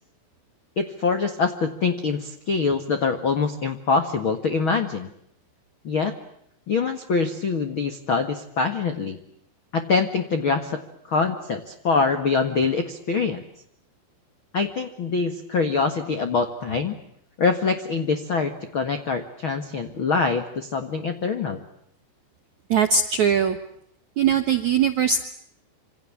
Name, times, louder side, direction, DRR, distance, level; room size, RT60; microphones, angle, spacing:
voice 1, 0.8-5.1 5.8-6.1 6.7-9.2 9.7-10.8 11.1-13.4 14.5-17.0 17.4-21.6, left 4 dB, 85° left, 8 dB, 1.1 m, -24 dB
voice 2, 22.7-23.6 24.2-25.2, right 7 dB, 75° right, 7 dB, 1.7 m, -20 dB
27.0 x 27.0 x 7.3 m, 0.72 s
omnidirectional pair, 5.4 m